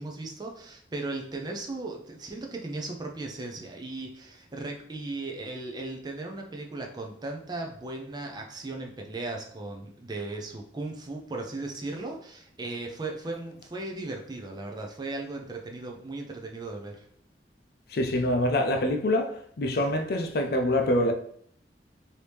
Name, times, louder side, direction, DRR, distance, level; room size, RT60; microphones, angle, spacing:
voice 1, 0.0-17.1, right 2 dB, 25° right, 0.4 m, -37 dB
voice 2, 17.9-21.1, left 1 dB, 60° left, 0.4 m, -25 dB
3.1 x 2.7 x 3.3 m
head